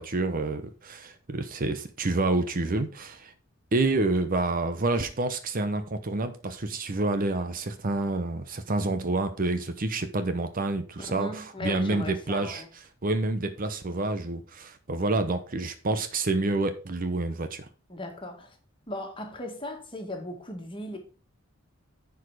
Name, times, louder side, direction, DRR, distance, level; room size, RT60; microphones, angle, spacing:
voice 1, 0.0-3.3 3.7-12.6 13.0-17.7, right 2 dB, 40° right, 0.8 m, -28 dB
voice 2, 11.1-12.7 17.9-18.6 18.9-21.0, left 1 dB, 25° left, 1.9 m, -37 dB
10.0 x 4.8 x 4.8 m
head